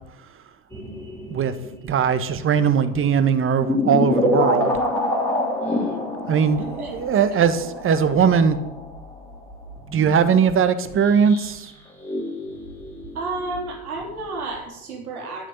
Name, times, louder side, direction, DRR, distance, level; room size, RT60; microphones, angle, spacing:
sound 1, 0.7-2.2 2.7-3.0 3.6-11.7 12.0-14.2 14.5-14.6, left 2 dB, 5° left, 3.7 m, -27 dB
voice 1, 1.8-4.8 6.3-8.6 9.9-11.7, right 7 dB, 30° right, 11 dB, 1.4 m, -20 dB
voice 2, 5.6-6.0 6.7-7.4 13.1-15.5, right 3 dB, 75° right, 0 dB, 3.9 m, -32 dB
12.5 x 6.6 x 8.1 m, 0.92 s
figure-of-eight pair, 75°, 44 cm